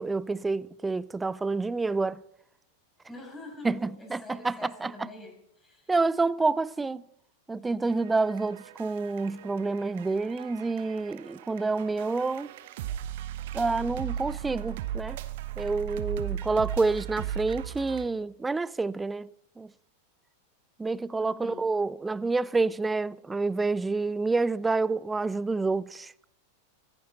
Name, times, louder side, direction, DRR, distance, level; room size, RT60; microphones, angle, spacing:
voice 1, 0.0-2.2 3.6-4.9 5.9-7.0 7.5-12.5 13.5-15.2 15.6-19.3 19.6-19.7 20.8-26.1, right 3 dB, 10° right, 0.4 m, -28 dB
voice 2, 3.1-5.9 21.2-21.6, left 2 dB, 10° left, 6.8 m, -46 dB
sound 1, 7.9-18.1, right 11 dB, 55° right, 1.1 m, -37 dB
24.0 x 10.5 x 4.0 m
figure-of-eight pair, 90°, 0 cm